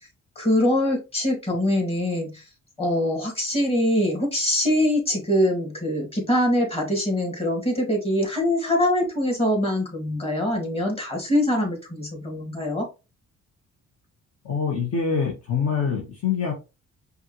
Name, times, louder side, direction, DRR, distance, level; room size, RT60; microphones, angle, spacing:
voice 1, 0.4-2.4 2.8-12.9, left 1 dB, 20° left, 0 dB, 2.5 m, -23 dB
voice 2, 14.4-16.5, left 6 dB, 50° left, -1 dB, 1.4 m, -25 dB
5.4 x 2.7 x 3.0 m, 0.28 s
cardioid pair, 90°, 30 cm